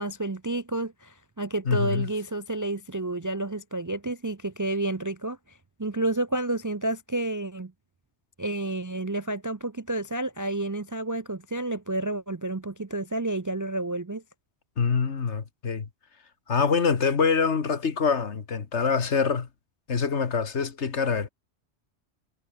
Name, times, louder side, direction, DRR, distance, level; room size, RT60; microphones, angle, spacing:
voice 1, 0.0-7.7 8.4-14.2, right 2 dB, 25° right, 0.4 m, -30 dB
voice 2, 1.7-2.1 14.8-15.9 16.5-19.5 19.9-21.3, left 5 dB, 75° left, 1.9 m, -25 dB
omnidirectional pair, 1.2 m